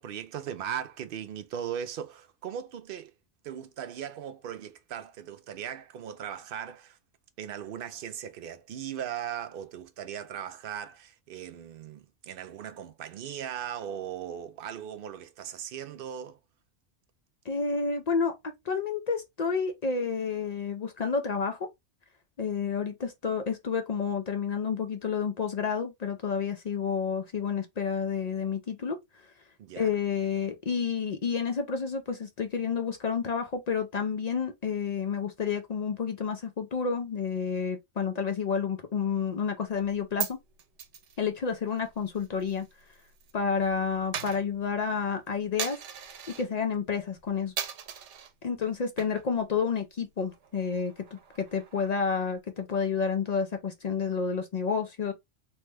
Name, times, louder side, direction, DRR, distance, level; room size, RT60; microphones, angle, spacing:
voice 1, 0.0-3.1 3.4-7.0 7.4-16.4 29.6-29.9, right 9 dB, 60° right, 0.6 m, -38 dB
voice 2, 17.5-18.3 18.7-21.7 22.4-29.0 29.8-40.4 41.2-42.7 43.3-45.8 46.4-47.5 48.4-55.1, left 6 dB, 60° left, 0.4 m, -30 dB
Coin (dropping), 39.8-43.3 43.6-46.5 46.9-47.2 47.6-48.3 48.8-49.4 49.7-49.8 50.2-52.1, right 8 dB, 85° right, 0.9 m, -39 dB
3.1 x 2.1 x 3.3 m
omnidirectional pair, 1.2 m